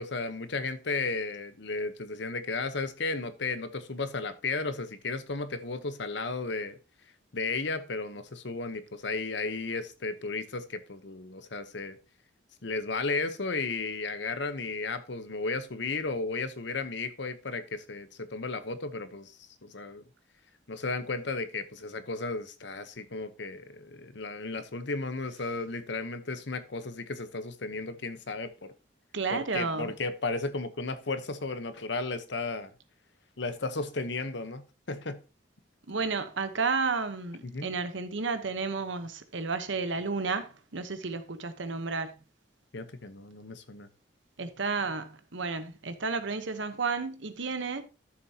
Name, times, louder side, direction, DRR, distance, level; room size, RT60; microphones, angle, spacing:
voice 1, 0.0-6.8 7.3-12.0 12.6-20.0 20.7-28.7 29.3-32.7 33.4-35.2 37.4-37.7 42.7-43.9, left 3 dB, 65° left, 0.9 m, -34 dB
voice 2, 29.1-29.9 35.9-42.1 44.4-47.8, right 4 dB, 75° right, 1.0 m, -32 dB
12.5 x 7.0 x 2.8 m
head